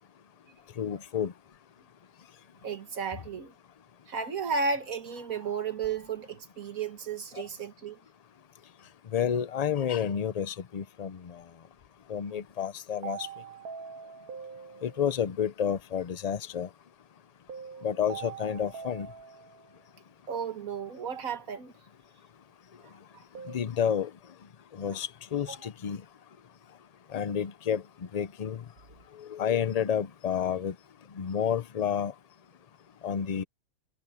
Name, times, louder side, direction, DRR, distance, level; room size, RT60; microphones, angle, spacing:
voice 1, 0.8-1.3 7.3-7.4 9.1-11.4 12.1-13.3 14.8-16.7 17.8-19.1 23.5-24.1 24.7-26.0 27.1-27.8 28.1-28.6 29.2-30.7 31.2-32.1 33.0-33.4, left 8 dB, 60° left, 0.4 m, -30 dB
voice 2, 2.6-3.5 4.1-8.0 20.3-21.7 25.5-25.6, right 5 dB, 70° right, 2.0 m, -33 dB
sound 1, 13.0-15.3 17.5-19.8 23.3-23.6, right 7 dB, 85° right, 1.6 m, -43 dB
omnidirectional pair, 1.5 m